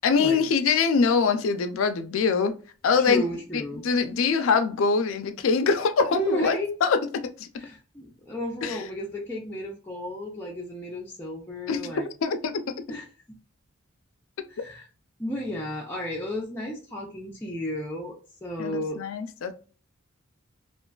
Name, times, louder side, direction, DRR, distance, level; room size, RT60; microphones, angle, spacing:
voice 1, 0.0-2.5 2.8-3.2 3.5-7.5 8.6-8.8 11.7-11.9 12.2-12.6 18.6-19.5, left 5 dB, 75° left, 0.4 m, -24 dB
voice 2, 3.0-3.8 6.1-6.7 7.6-12.1 12.9-13.4 14.5-14.9 15.2-19.0, left 1 dB, 10° left, 0.4 m, -33 dB
2.4 x 2.2 x 2.3 m
head